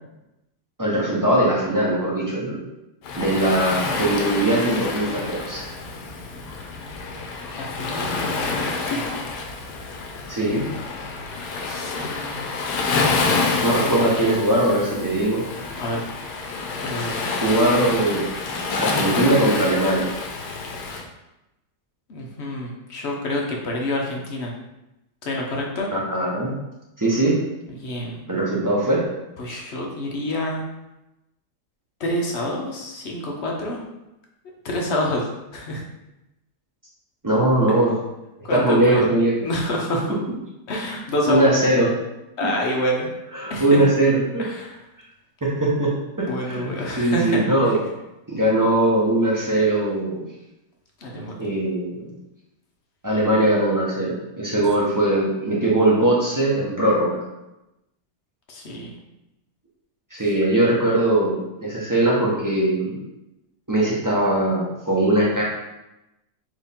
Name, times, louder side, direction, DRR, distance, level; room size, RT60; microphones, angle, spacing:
voice 1, 0.8-2.6 3.2-5.7 10.3-10.6 13.6-15.4 17.4-18.2 18.7-20.1 25.9-26.6 27.0-27.4 28.3-29.0 29.5-29.6 37.2-38.0 38.5-39.3 41.3-41.9 43.3-44.4 45.4-45.9 46.2-46.7 47.0-47.8 48.3-50.2 51.4-52.1 53.0-57.2 60.1-63.0 63.7-65.4, right 1 dB, 20° right, -5 dB, 0.5 m, -20 dB
Waves surf, 3.0-21.0, left 4 dB, 75° left, 1.2 m, -27 dB
voice 2, 7.6-9.0 11.6-12.5 15.7-16.0 16.8-17.3 22.1-24.5 25.2-25.9 27.7-28.2 29.4-30.6 32.0-33.8 34.6-35.3 35.5-35.8 38.4-39.1 39.4-40.1 40.7-41.5 42.4-43.1 43.5-43.8 44.4-44.8 46.2-47.5 51.0-51.3 58.5-58.9, left 1 dB, 55° left, -1 dB, 0.8 m, -27 dB
4.4 x 3.1 x 3.6 m, 0.93 s
omnidirectional pair, 1.8 m